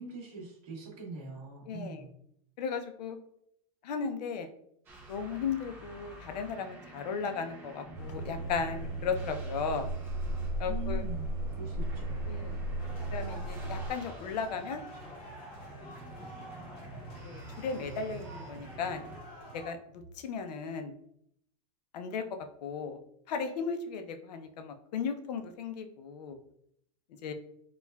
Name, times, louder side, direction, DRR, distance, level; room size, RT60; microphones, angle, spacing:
voice 1, 0.0-2.1 10.6-12.2, right 4 dB, 35° right, -4 dB, 1.2 m, -43 dB
voice 2, 1.7-2.1 2.6-3.2 3.8-4.5 5.1-9.9 10.6-11.0 12.2-12.6 13.1-14.8 16.2-16.5 17.2-19.0 19.5-20.9 21.9-22.2 22.6-23.0 23.3-26.4 27.2-27.3, left 5 dB, 90° left, 7 dB, 0.5 m, -36 dB
sound 1, 4.9-19.2, right 2 dB, 10° right, 0.4 m, -50 dB
sound 2, 7.9-13.9, right 1 dB, 10° left, 1.4 m, -35 dB
sound 3, 12.8-19.7, equal, 25° left, 1.1 m, -48 dB
4.4 x 2.3 x 2.2 m, 0.71 s
supercardioid pair, 180°, 20 cm